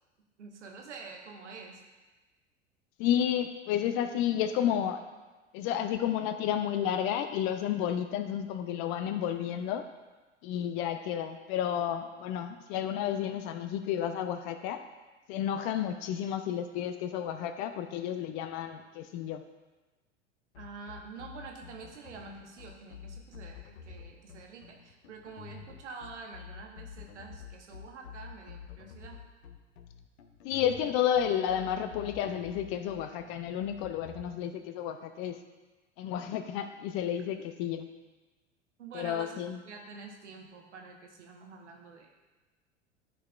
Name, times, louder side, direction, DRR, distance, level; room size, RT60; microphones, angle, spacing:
voice 1, 0.4-1.8 20.6-29.2 38.8-42.1, right 4 dB, 70° right, 1 dB, 1.2 m, -47 dB
voice 2, 3.0-5.0 5.5-9.8 10.4-14.8 15.3-19.4 30.4-35.4 36.0-37.9 38.9-39.6, left 10 dB, 35° left, 9 dB, 0.5 m, -31 dB
sound 1, 20.5-34.2, left 7 dB, 60° left, 0.8 m, -48 dB
11.5 x 4.6 x 2.4 m, 1.2 s
figure-of-eight pair, 85°, 36 cm